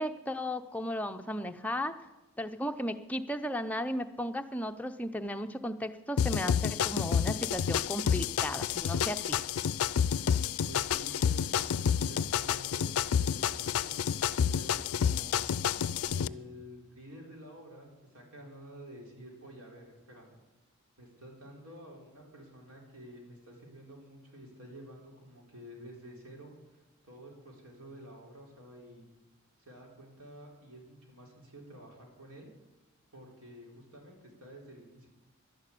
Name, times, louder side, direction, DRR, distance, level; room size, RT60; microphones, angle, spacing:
voice 1, 0.0-1.9 2.4-9.4, equal, 5° left, 6 dB, 0.5 m, -35 dB
sound 1, 6.2-16.3, left 8 dB, 80° left, 0.4 m, -29 dB
voice 2, 10.7-12.9 13.2-13.9 14.4-15.4 16.1-20.4 21.0-26.5 27.0-29.0 29.6-32.5 33.1-35.1, equal, 75° right, 0 dB, 3.9 m, -50 dB
11.5 x 11.0 x 8.3 m, 1.0 s
head